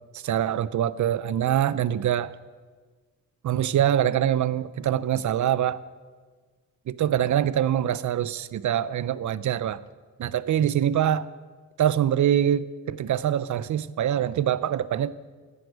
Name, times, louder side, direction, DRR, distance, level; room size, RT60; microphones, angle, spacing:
voice 1, 0.1-2.3 3.4-5.8 6.9-9.8 10.2-11.3 11.8-15.1, right 10 dB, 70° right, 18 dB, 0.5 m, -24 dB
15.5 x 9.6 x 6.3 m, 1.5 s
wide cardioid pair, 145°, 31 cm